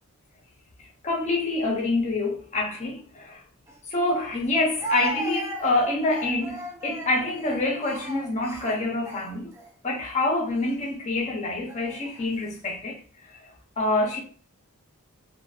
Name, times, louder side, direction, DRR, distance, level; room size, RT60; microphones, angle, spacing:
voice 1, 1.0-3.4 3.9-9.5 9.8-13.0 13.4-14.2, left 2 dB, 30° left, 0.7 m, -26 dB
Speech, 3.7-3.8 4.8-9.7 10.5-10.7 11.7-12.3, right 2 dB, 10° right, 0.4 m, -36 dB
2.5 x 2.3 x 2.3 m
head